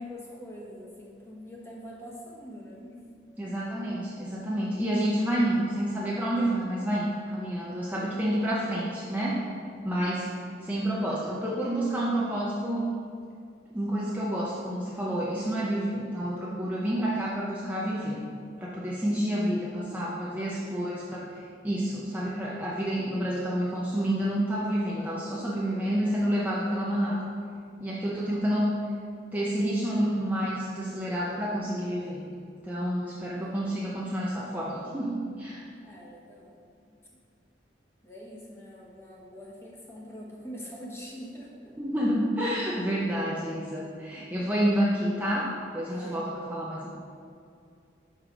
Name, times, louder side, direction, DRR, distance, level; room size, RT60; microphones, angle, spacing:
voice 1, 0.0-3.0 20.5-20.6 26.4-26.9 33.4-33.6 35.7-36.9 38.0-41.8 45.9-46.8, equal, 15° left, -3 dB, 0.9 m, -44 dB
voice 2, 3.4-9.4 9.8-10.3 10.6-12.9 13.7-18.2 18.6-27.2 27.8-28.7 29.3-32.2 32.6-35.6 41.8-47.0, equal, 10° right, -6 dB, 0.5 m, -29 dB
5.5 x 4.7 x 5.0 m, 2.4 s
head